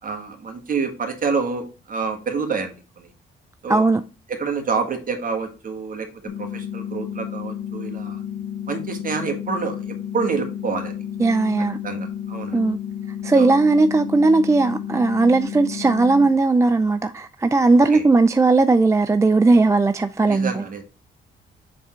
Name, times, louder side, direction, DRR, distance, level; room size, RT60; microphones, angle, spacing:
voice 1, 0.0-3.1 3.6-3.9 4.3-6.1 6.4-8.2 8.7-10.9 11.8-12.6 13.3-13.6 17.9-18.1 20.2-20.8, right 5 dB, 45° right, 1.7 m, -27 dB
voice 2, 3.7-4.0 11.2-11.8 12.5-12.8 13.2-20.6, right 3 dB, 15° right, 0.4 m, -17 dB
sound 1, 6.3-16.3, left 9 dB, 65° left, 1.6 m, -32 dB
7.2 x 3.6 x 4.4 m
cardioid pair, 90°, 20 cm